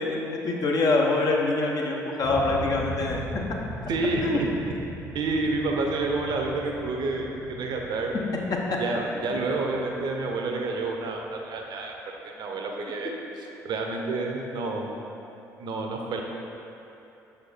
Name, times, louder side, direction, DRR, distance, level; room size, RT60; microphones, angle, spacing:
voice 1, 0.0-3.2 4.2-4.4 9.2-9.4, left 3 dB, 45° left, -1 dB, 0.9 m, -25 dB
sound 1, 2.2-11.0, equal, 75° left, 1.5 m, -39 dB
voice 2, 3.9-4.2 5.1-8.1 8.8-11.9 12.2-13.1 13.6-14.9 15.6-16.2, right 3 dB, 55° right, 1 dB, 0.8 m, -29 dB
6.6 x 4.3 x 4.1 m, 2.9 s
figure-of-eight pair, 50°, 9 cm